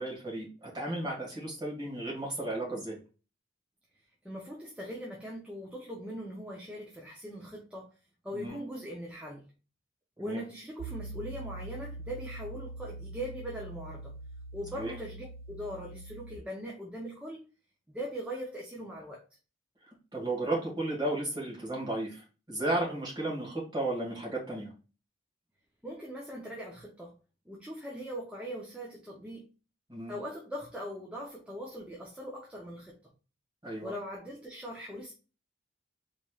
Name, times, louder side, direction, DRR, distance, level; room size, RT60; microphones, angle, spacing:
voice 1, 0.0-3.0 8.3-8.6 10.2-10.4 14.7-14.9 20.1-24.7 29.9-30.1 33.6-33.9, right 2 dB, 20° right, 1.6 m, -34 dB
voice 2, 4.2-7.9 8.2-9.4 10.2-14.1 14.5-17.5 17.9-19.2 25.8-27.1 27.5-29.4 30.1-33.1 33.8-35.1, equal, 5° right, 0.5 m, -41 dB
Piano, 10.8-16.4, right 2 dB, 85° right, 0.3 m, -43 dB
4.1 x 3.0 x 2.3 m
head